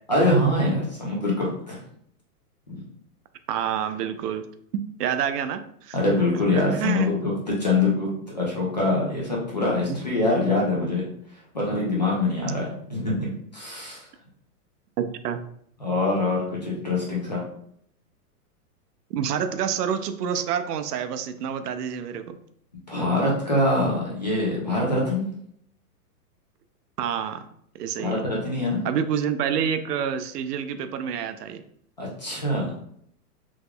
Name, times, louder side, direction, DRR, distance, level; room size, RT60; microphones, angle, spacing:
voice 1, 0.1-1.8 2.7-2.8 5.9-11.1 11.5-14.1 15.8-17.4 22.9-25.2 28.0-28.8 32.0-32.7, left 2 dB, 30° left, -4 dB, 0.4 m, -24 dB
voice 2, 3.5-4.4 4.7-6.0 6.5-7.1 9.9-10.0 15.0-15.4 19.1-22.4 27.0-27.4 27.7-28.2 28.8-31.6, right 8 dB, 90° right, 10 dB, 0.5 m, -28 dB
3.5 x 3.0 x 2.2 m, 0.67 s
supercardioid pair, 180°, 46 cm